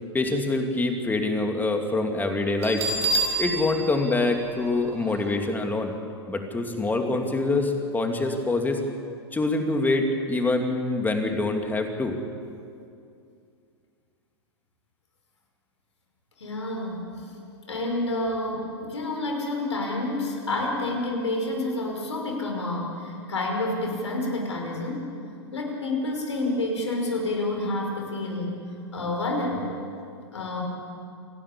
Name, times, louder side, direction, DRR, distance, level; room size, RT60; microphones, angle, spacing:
voice 1, 0.1-2.9 3.4-5.9 6.3-8.8 9.3-12.2, left 2 dB, 10° left, 4 dB, 2.7 m, -25 dB
Bell, 2.6-5.3, right 2 dB, 75° right, 5.7 m, -29 dB
voice 2, 16.4-17.3 17.7-25.1 25.5-28.6 28.9-29.8 30.3-30.6, left 2 dB, 85° left, 1 dB, 5.5 m, -29 dB
28.5 x 12.0 x 8.7 m, 2.5 s
hypercardioid pair, 110°, 15 cm